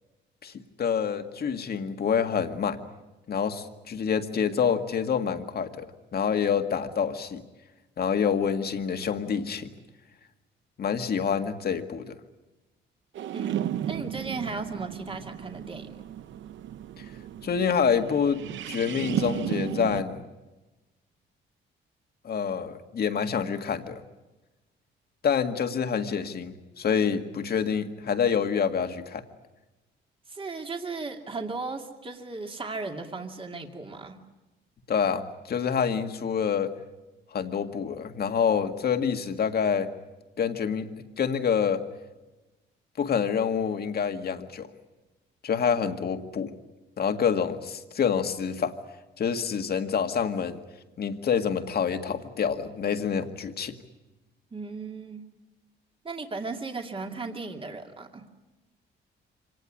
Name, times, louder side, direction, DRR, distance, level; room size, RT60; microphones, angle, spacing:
voice 1, 0.8-2.8 3.3-5.9 6.1-7.4 8.0-9.7 10.8-12.1 17.0-17.1 17.4-20.2 22.2-24.0 25.2-29.2 34.9-36.7 37.3-39.9 40.4-40.9 41.2-41.8 43.0-44.7 45.4-46.5 47.0-48.7 49.2-50.6 51.0-53.7, left 7 dB, 50° left, 7 dB, 1.9 m, -27 dB
sound 1, 13.2-20.0, right 11 dB, 75° right, 0.9 m, -34 dB
voice 2, 13.3-16.0 30.3-34.2 54.5-55.3 56.0-58.2, right 3 dB, 25° right, 3 dB, 2.4 m, -36 dB
25.0 x 18.5 x 9.9 m, 1.1 s
cardioid pair, 90°, 20 cm